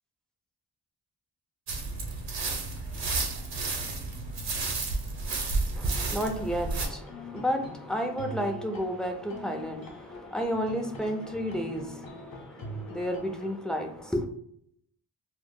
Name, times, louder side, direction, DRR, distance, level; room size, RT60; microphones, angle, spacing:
sound 1, 1.7-6.9, right 3 dB, 70° right, 0.7 m, -31 dB
voice 1, 5.7-14.3, equal, ahead, 3 dB, 0.4 m, -32 dB
sound 2, 5.8-13.6, left 1 dB, 50° left, 0.7 m, -43 dB
2.0 x 2.0 x 3.5 m, 0.69 s
cardioid pair, 70°, 44 cm